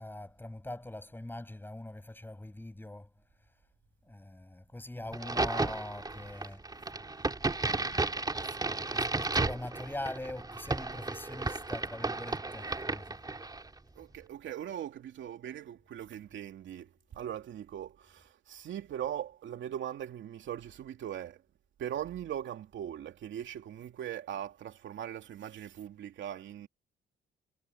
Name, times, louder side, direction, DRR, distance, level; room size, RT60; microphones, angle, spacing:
voice 1, 0.0-3.1 4.1-6.6 7.7-8.0 8.3-13.2, left 1 dB, 10° left, 7.4 m, -43 dB
Crack, 5.1-13.7, right 3 dB, 20° right, 3.3 m, -33 dB
voice 2, 14.0-21.4 21.8-26.7, right 10 dB, 70° right, 2.8 m, -40 dB
cardioid pair, 90°, 20 cm